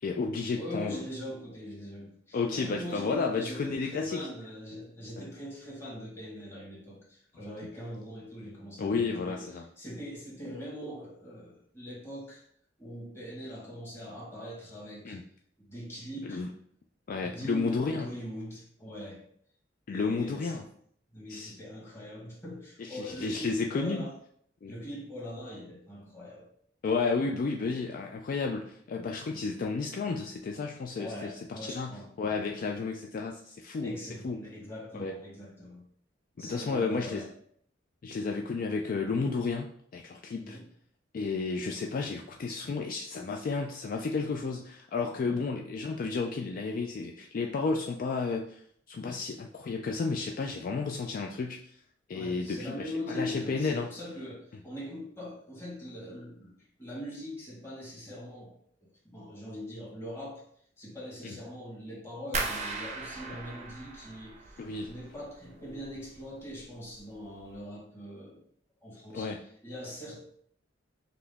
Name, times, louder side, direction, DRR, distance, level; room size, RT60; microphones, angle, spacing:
voice 1, 0.0-1.0 2.3-4.2 5.2-5.3 8.8-9.7 15.0-15.2 16.3-16.5 17.1-18.1 19.9-20.6 21.3-21.5 22.8-24.1 24.6-24.7 26.8-34.4 34.9-35.1 36.4-37.3 38.0-40.6 41.1-48.6 48.9-51.7 52.1-53.9 61.2-61.4 64.6-64.9 69.1-69.4, left 4 dB, 45° left, 2 dB, 0.3 m, -32 dB
voice 2, 0.5-9.4 9.8-12.4 12.8-15.2 15.6-16.5 17.2-19.2 19.9-20.6 21.1-24.1 24.7-26.5 27.6-27.8 29.3-29.5 31.0-32.1 33.8-35.8 36.4-37.3 40.4-40.7 45.3-45.4 52.1-58.5 58.8-60.4 60.8-68.4 68.8-69.3 69.6-70.2, equal, 15° left, -5 dB, 1.4 m, -42 dB
sound 1, 62.3-65.2 65.5-66.2 66.5-67.0 67.4-67.5, right 3 dB, 35° right, 0.6 m, -37 dB
5.7 x 2.0 x 3.4 m, 0.62 s
head